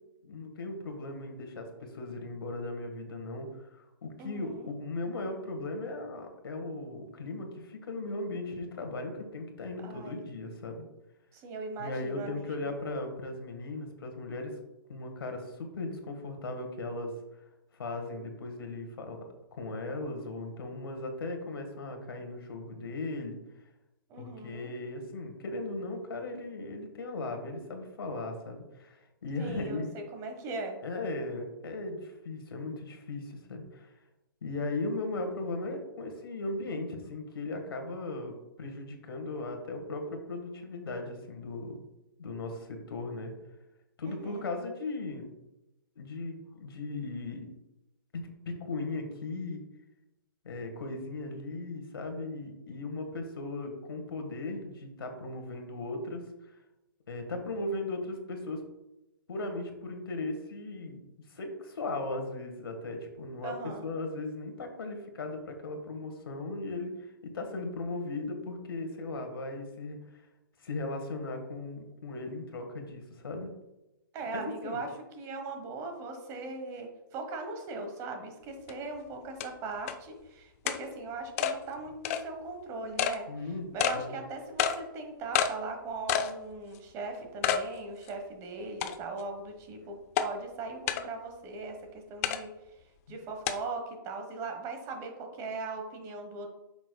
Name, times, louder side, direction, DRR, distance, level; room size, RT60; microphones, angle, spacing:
voice 1, 0.2-1.7 1.9-3.5 4.0-10.8 11.8-14.5 14.9-17.1 17.7-19.2 19.5-23.4 24.2-29.9 30.8-33.9 34.4-41.7 42.2-43.3 44.0-45.3 46.0-47.5 48.1-49.6 50.5-56.2 57.1-58.6 59.3-61.0 61.4-63.5 63.8-66.9 67.2-70.0 70.6-73.5 74.3-74.8 83.3-83.7 83.9-84.1 93.1-93.2, left 2 dB, 85° left, 5 dB, 1.6 m, -37 dB
voice 2, 4.2-4.7 9.8-10.2 11.3-12.7 24.1-24.7 29.4-30.8 44.0-44.5 63.4-63.9 74.1-74.9 75.2-83.3 83.7-92.5 93.1-96.5, right 3 dB, 25° right, 5 dB, 1.1 m, -39 dB
sound 1, 78.7-78.8 79.4-79.5 79.9-80.0 80.7-80.8 81.4-81.5 82.0-82.2 83.0-83.2 83.8-84.0 84.6-84.8 85.3-85.5 86.1-86.3 86.7-86.8 87.4-87.6 88.1-88.2 88.8-89.2 90.2-90.3 90.9-91.0 92.2-92.4 93.5-93.6, left 9 dB, 40° left, 0.5 m, -28 dB
8.4 x 6.1 x 2.2 m, 0.95 s
hypercardioid pair, 145°, 12 cm